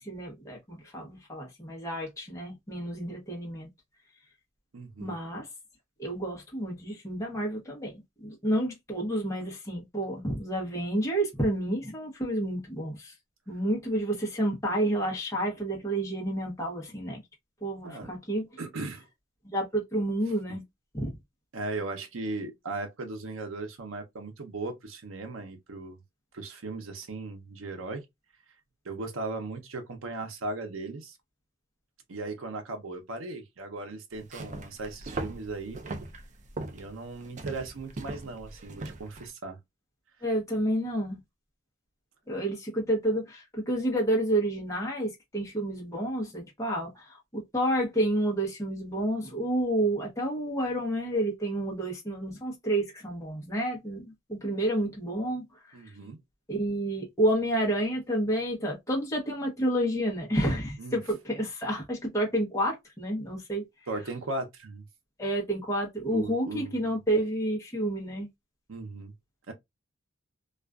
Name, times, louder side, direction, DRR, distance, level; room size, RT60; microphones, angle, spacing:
voice 1, 0.0-3.7 5.0-5.5 6.0-13.1 13.5-17.2 17.6-18.5 19.5-20.6 20.9-21.1 40.2-41.2 42.3-55.9 56.5-63.6 65.2-68.3, right 1 dB, 15° left, 0.8 m, -30 dB
voice 2, 4.7-5.2 17.8-18.1 18.6-19.0 20.5-20.6 21.5-26.0 26.3-28.1 28.8-31.2 32.1-35.8 36.7-39.6 55.7-56.2 60.8-61.0 63.9-64.8 66.1-66.9 68.7-69.1 69.5-69.6, right 2 dB, 85° right, 0.7 m, -37 dB
sound 1, 34.2-39.3, right 2 dB, 40° right, 0.4 m, -39 dB
2.4 x 2.3 x 2.2 m
head